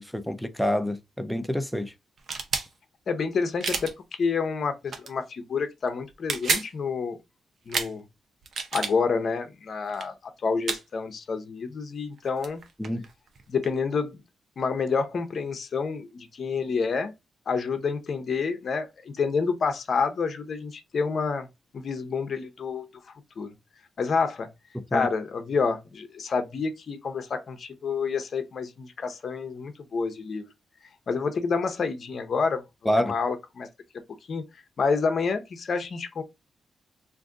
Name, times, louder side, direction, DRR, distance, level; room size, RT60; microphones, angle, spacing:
voice 1, 0.0-1.9 12.8-13.1 24.9-25.1 32.9-33.1, equal, ahead, 0.5 m, -27 dB
sound 1, 2.2-2.7 3.6-3.9 4.9-5.1 6.1-6.7 7.7-7.9 8.4-8.9 9.9-10.1 10.7-10.8 12.2-12.3 12.4-13.7, right 5 dB, 60° right, 0.6 m, -29 dB
voice 2, 3.1-7.2 7.7-8.0 8.7-10.1 10.4-12.6 13.5-14.2 14.6-17.1 17.5-21.5 21.7-22.9 23.4-23.5 24.0-24.5 24.9-30.5 31.1-32.6 33.0-33.7 34.3-34.4 34.8-36.2, left 5 dB, 55° left, 0.7 m, -28 dB
2.6 x 2.5 x 3.6 m
cardioid pair, 105°, 0 cm